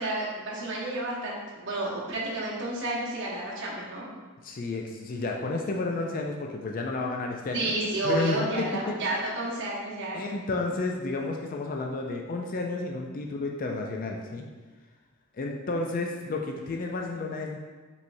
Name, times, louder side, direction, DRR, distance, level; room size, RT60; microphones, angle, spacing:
voice 1, 0.0-4.1 7.5-10.2, right 2 dB, 55° right, -5 dB, 1.0 m, -31 dB
voice 2, 4.4-7.7 8.0-9.0 10.1-14.5 15.3-17.6, left 3 dB, 40° left, 1 dB, 0.3 m, -31 dB
5.4 x 3.2 x 2.6 m, 1.3 s
head